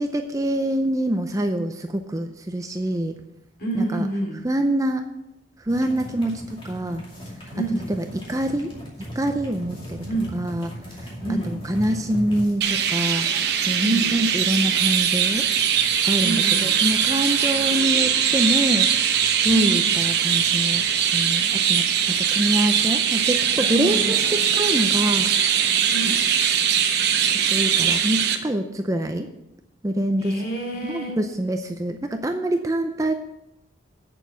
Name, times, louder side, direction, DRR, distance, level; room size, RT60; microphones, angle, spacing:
voice 1, 0.0-3.2 3.7-4.1 4.4-5.1 5.6-7.0 7.9-8.7 9.1-10.0 10.3-10.7 11.4-15.5 16.0-18.9 19.2-20.9 21.1-21.8 22.2-25.3 25.6-25.8 27.3-29.3 29.8-30.4 30.8-33.1, right 1 dB, 15° right, 6 dB, 0.5 m, -25 dB
voice 2, 3.6-4.4 7.5-7.9 10.1-10.3 11.2-11.6 13.8-14.1 16.2-16.7 19.5-19.8 23.8-24.2 25.9-26.2 30.2-31.2, right 2 dB, 50° left, 1 dB, 2.7 m, -27 dB
sound 1, 5.7-22.0, equal, 25° left, 2.4 m, -40 dB
Chirp tweet, 12.6-28.4, right 8 dB, 55° right, 0.8 m, -21 dB
sound 2, 15.0-22.1, equal, 10° left, 1.6 m, -44 dB
8.2 x 6.9 x 7.0 m, 0.85 s
head